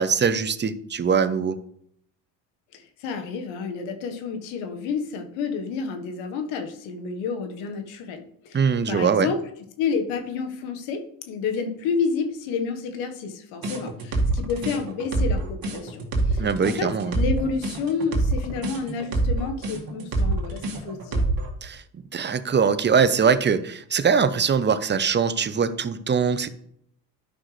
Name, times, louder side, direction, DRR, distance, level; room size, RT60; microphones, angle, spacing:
voice 1, 0.0-1.6 8.5-9.3 16.4-17.1 21.6-21.8 22.1-26.5, right 6 dB, 25° right, 13 dB, 0.7 m, -22 dB
voice 2, 2.7-9.4 9.8-21.2, left 5 dB, 75° left, 5 dB, 1.5 m, -30 dB
sound 1, 13.6-21.5, right 2 dB, 45° right, 2.1 m, -25 dB
11.5 x 5.7 x 3.3 m, 0.69 s
supercardioid pair, 75°, 47 cm